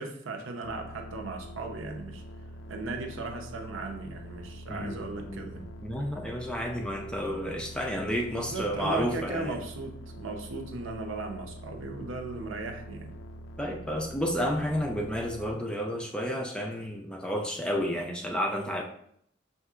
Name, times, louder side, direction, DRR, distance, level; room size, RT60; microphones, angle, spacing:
voice 1, 0.0-2.2 2.7-5.6 8.3-13.1, right 3 dB, 80° right, 3 dB, 0.7 m, -37 dB
sound 1, 0.6-15.5, right 1 dB, 80° left, 0.4 m, -45 dB
voice 2, 4.7-9.6 13.6-18.8, equal, 5° left, 1 dB, 0.3 m, -31 dB
6.3 x 2.8 x 2.4 m, 0.69 s
head